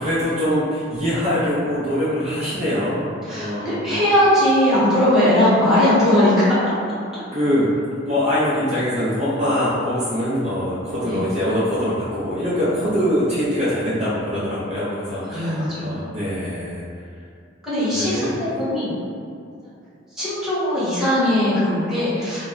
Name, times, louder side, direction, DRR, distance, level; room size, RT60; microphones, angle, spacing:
voice 1, 0.0-4.0 7.3-7.7 8.0-16.8 17.9-18.4, equal, 35° right, -10 dB, 0.5 m, -23 dB
voice 2, 3.3-6.3 11.0-11.2 15.2-15.9 17.6-18.9 20.2-22.5, left 1 dB, ahead, -13 dB, 1.0 m, -19 dB
2.2 x 2.0 x 3.7 m, 2.4 s
head